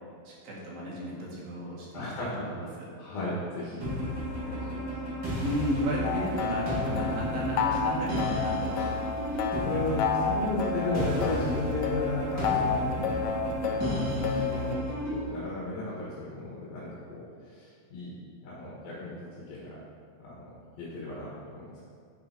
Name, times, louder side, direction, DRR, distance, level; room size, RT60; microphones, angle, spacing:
voice 1, 0.3-2.9 5.4-9.0 9.3-10.2 10.4-10.6, right 1 dB, 80° right, -5 dB, 4.3 m, -34 dB
voice 2, 1.9-2.5 3.0-3.8 4.4-4.8 9.6-13.1 13.6-14.8 15.1-18.1 18.4-19.8 20.2-20.5 20.8-21.8, left 2 dB, 60° left, -7 dB, 3.3 m, -34 dB
sound 1, 3.8-15.2, equal, 35° right, 1.9 m, -33 dB
sound 2, 6.0-14.7, left 6 dB, 85° left, 2.9 m, -31 dB
9.3 x 7.5 x 4.6 m, 2.3 s
omnidirectional pair, 5.0 m